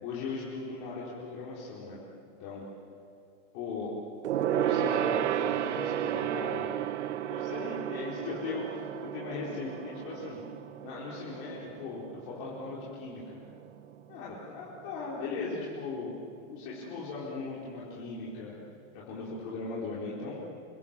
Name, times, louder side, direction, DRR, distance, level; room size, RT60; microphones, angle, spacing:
voice 1, 0.0-2.0 2.4-2.6 3.5-3.9 4.5-6.7 7.3-8.9 9.1-10.4 10.8-13.4 14.1-16.1 16.5-18.5 18.9-20.4, left 4 dB, 30° left, -6 dB, 4.5 m, -38 dB
Gong, 4.2-14.0 14.3-14.6 14.9-15.0, right 11 dB, 70° right, 1.3 m, -33 dB
28.5 x 23.5 x 7.6 m, 2.6 s
supercardioid pair, 175°, 36 cm